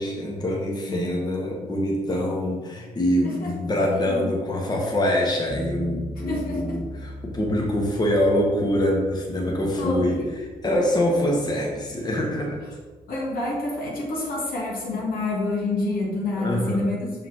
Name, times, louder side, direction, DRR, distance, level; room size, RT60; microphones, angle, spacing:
voice 1, 0.0-10.2 10.6-12.6 16.4-16.9, left 1 dB, 20° left, -1 dB, 1.3 m, -24 dB
voice 2, 3.9-4.3 6.3-6.6 9.7-10.4 13.1-17.3, left 2 dB, 55° left, -3 dB, 1.6 m, -28 dB
sound 1, 5.5-16.4, equal, 5° right, 0.4 m, -41 dB
6.4 x 5.6 x 2.9 m, 1.3 s
figure-of-eight pair, 45°, 18 cm